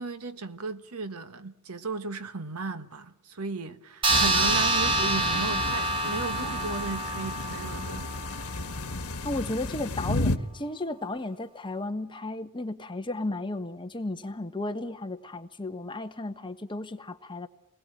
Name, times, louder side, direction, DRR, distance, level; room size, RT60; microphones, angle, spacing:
voice 1, 0.0-8.1, right 3 dB, 85° right, 1.4 m, -35 dB
sound 1, 4.0-8.9, right 2 dB, 25° right, 1.7 m, -27 dB
sound 2, 4.1-10.4, left 2 dB, 75° left, 1.5 m, -33 dB
voice 2, 9.2-17.5, left 2 dB, 20° left, 1.4 m, -34 dB
29.0 x 20.5 x 9.0 m
head